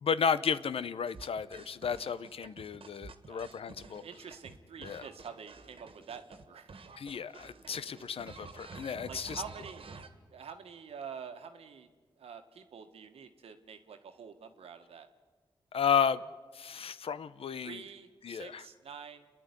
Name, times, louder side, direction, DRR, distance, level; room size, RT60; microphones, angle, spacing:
voice 1, 0.0-4.0 4.8-5.1 7.0-9.4 15.7-16.2 16.5-17.8 18.2-18.6, left 7 dB, 70° left, 15 dB, 0.8 m, -33 dB
sound 1, 1.1-6.4 6.7-10.1, right 4 dB, 65° right, 1.7 m, -50 dB
voice 2, 4.0-6.7 9.1-9.9 10.3-11.9 12.2-15.1 17.6-19.3, right 6 dB, 85° right, 7 dB, 1.6 m, -47 dB
29.0 x 10.5 x 9.8 m, 1.4 s
cardioid pair, 50°, 10 cm